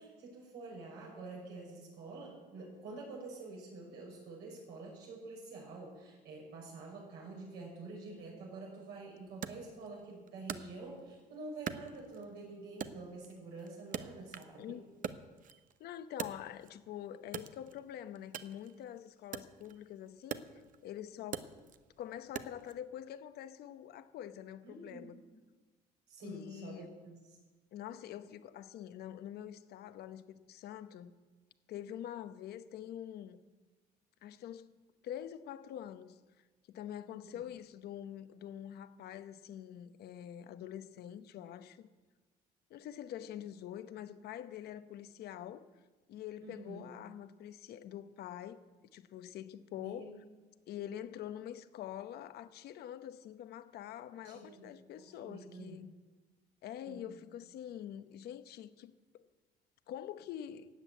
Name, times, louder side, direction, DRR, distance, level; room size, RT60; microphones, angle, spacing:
voice 1, 0.0-14.8 24.6-25.1 26.1-27.1 37.2-37.4 46.4-46.9 49.8-50.2 54.2-55.8 56.9-57.2, right 3 dB, 85° right, 5.9 m, -48 dB
Wood, 9.4-11.2 11.7-12.4 12.8-14.6 14.9-16.8 17.3-22.8, right 8 dB, 50° right, 0.8 m, -44 dB
voice 2, 15.8-21.5 22.0-25.2 26.2-26.9 27.7-31.1 31.7-33.4 34.2-34.7 35.0-36.2 36.7-41.9 42.7-45.7 46.1-48.6 48.9-50.1 50.7-55.9 56.6-59.2 59.9-60.7, left 10 dB, 70° left, 0.9 m, -45 dB
13.0 x 8.0 x 9.3 m
cardioid pair, 110°, 17 cm